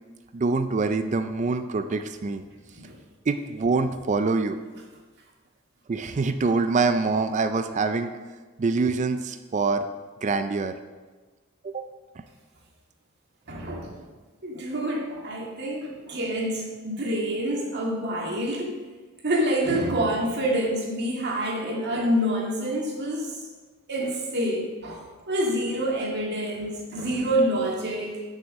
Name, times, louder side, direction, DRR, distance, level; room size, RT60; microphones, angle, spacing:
voice 1, 0.3-2.4 3.3-4.6 5.9-8.1 8.6-9.9 10.2-10.7 11.6-11.8, right 4 dB, 35° right, 8 dB, 0.4 m, -25 dB
voice 2, 13.5-14.0 14.4-18.7 19.2-23.5 23.9-28.2, right 1 dB, 50° right, -1 dB, 1.9 m, -27 dB
7.1 x 6.4 x 6.3 m, 1.3 s
head